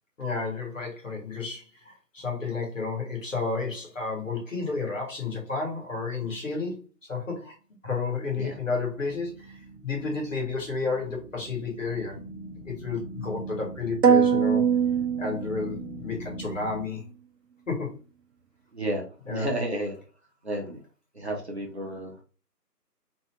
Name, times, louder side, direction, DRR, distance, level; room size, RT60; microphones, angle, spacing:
voice 1, 0.2-7.5 7.8-9.6 9.8-12.2 12.6-14.6 15.2-17.1 17.7-18.0 19.3-19.5, left 4 dB, 50° left, 0 dB, 1.4 m, -31 dB
sound 1, 8.5-16.8, right 2 dB, 35° left, 0.6 m, -41 dB
sound 2, 14.0-16.0, right 7 dB, 80° right, 0.6 m, -22 dB
voice 2, 18.7-19.9 20.4-20.8 21.1-22.2, right 1 dB, 40° right, -1 dB, 0.8 m, -32 dB
2.7 x 2.5 x 3.1 m, 0.34 s
figure-of-eight pair, 165°, 49 cm